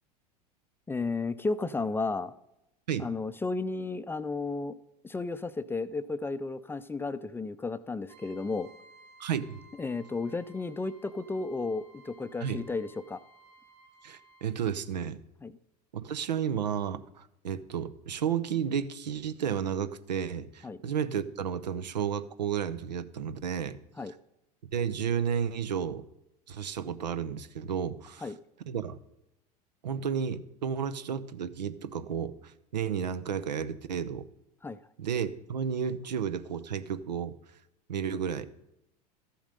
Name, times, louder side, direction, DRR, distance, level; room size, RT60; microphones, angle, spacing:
voice 1, 0.9-2.3 3.0-4.8 5.0-8.7 9.8-13.2 15.4-15.5 20.6-20.8 24.0-24.1 28.2-28.3 34.6-34.8, left 3 dB, 10° left, 13 dB, 0.4 m, -33 dB
Trumpet, 8.1-14.5, right 2 dB, 50° right, 2.4 m, -57 dB
voice 2, 9.2-9.6 12.4-12.6 14.0-15.2 16.0-23.8 24.7-26.0 26.5-28.3 28.7-29.0 29.8-34.2 35.0-37.4 37.9-38.5, right 8 dB, 85° right, 13 dB, 0.6 m, -32 dB
12.5 x 7.2 x 5.3 m, 0.86 s
hypercardioid pair, 85°, 21 cm